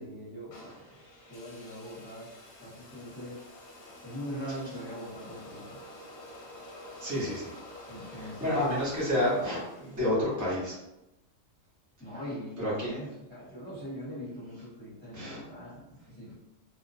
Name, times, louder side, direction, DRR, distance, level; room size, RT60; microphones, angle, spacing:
voice 1, 0.0-2.3 2.6-3.4 4.0-5.8 7.9-8.8 12.0-16.3, equal, 10° left, -11 dB, 1.0 m, -41 dB
sound 1, 0.5-10.7, left 1 dB, 70° left, 0.8 m, -49 dB
voice 2, 7.0-7.5 8.2-10.8 12.6-12.9 15.1-15.4, left 1 dB, 20° right, -8 dB, 0.6 m, -30 dB
2.3 x 2.2 x 2.5 m, 0.93 s
omnidirectional pair, 1.3 m